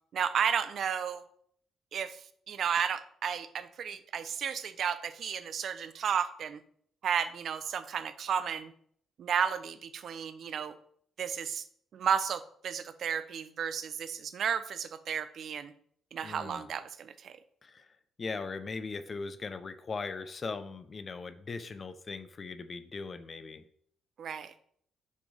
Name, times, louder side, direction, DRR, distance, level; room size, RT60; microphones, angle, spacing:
voice 1, 0.1-1.2 1.9-6.6 7.0-8.7 9.2-10.7 11.2-11.6 11.9-15.7 16.1-17.4 24.2-24.5, right 7 dB, 60° right, 13 dB, 0.7 m, -33 dB
voice 2, 16.2-16.6 17.6-17.9 18.2-23.6, left 4 dB, 40° left, 11 dB, 0.8 m, -39 dB
6.7 x 5.1 x 5.1 m, 0.63 s
cardioid pair, 90°, 0 cm